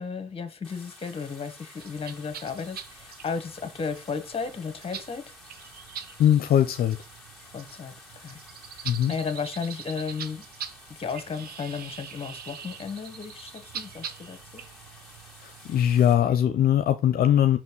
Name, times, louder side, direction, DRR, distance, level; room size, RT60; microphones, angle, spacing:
voice 1, 0.0-5.2 7.5-8.4 8.7-10.5 10.9-14.6, left 5 dB, 35° left, 1.5 m, -34 dB
sound 1, 0.6-16.1, left 2 dB, ahead, 2.5 m, -51 dB
sound 2, 1.8-16.4, right 8 dB, 75° right, 0.9 m, -44 dB
voice 2, 6.2-7.0 8.8-9.1 15.4-17.6, left 10 dB, 70° left, 0.6 m, -21 dB
5.9 x 4.3 x 4.6 m
cardioid pair, 100°, 16 cm